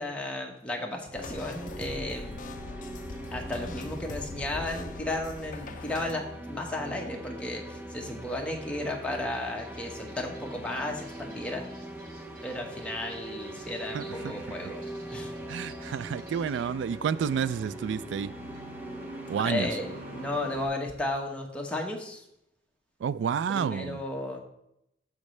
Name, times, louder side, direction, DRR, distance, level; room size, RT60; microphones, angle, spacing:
voice 1, 0.0-2.4 3.3-11.7 12.4-15.4 19.4-19.9 20.1-22.2 23.5-24.4, left 1 dB, 5° left, 0 dB, 1.2 m, -34 dB
sound 1, 1.1-6.1, left 3 dB, 45° left, 0.5 m, -41 dB
sound 2, 1.2-20.4, right 1 dB, 10° right, 0.6 m, -42 dB
sound 3, 3.1-20.7, equal, 50° right, 2.5 m, -48 dB
voice 2, 13.9-14.7 15.5-18.3 19.3-19.7 23.0-24.0, right 7 dB, 75° right, 17 dB, 0.3 m, -30 dB
13.5 x 5.2 x 3.2 m, 0.80 s
head